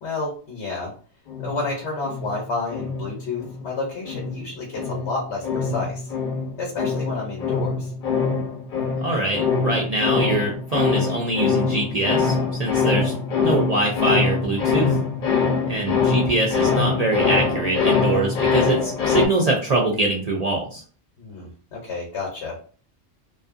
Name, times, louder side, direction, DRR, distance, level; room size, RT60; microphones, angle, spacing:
voice 1, 0.0-0.9 1.4-6.1 6.6-7.9 21.2-22.6, left 3 dB, 85° left, -2 dB, 1.1 m, -30 dB
sound 1, 1.3-3.7 4.1-19.3, left 5 dB, 55° left, 0.7 m, -24 dB
voice 2, 9.0-12.3 12.6-13.1 13.4-15.0 15.7-20.8, right 2 dB, 50° right, -1 dB, 0.5 m, -23 dB
2.6 x 2.3 x 2.4 m, 0.41 s
omnidirectional pair, 1.2 m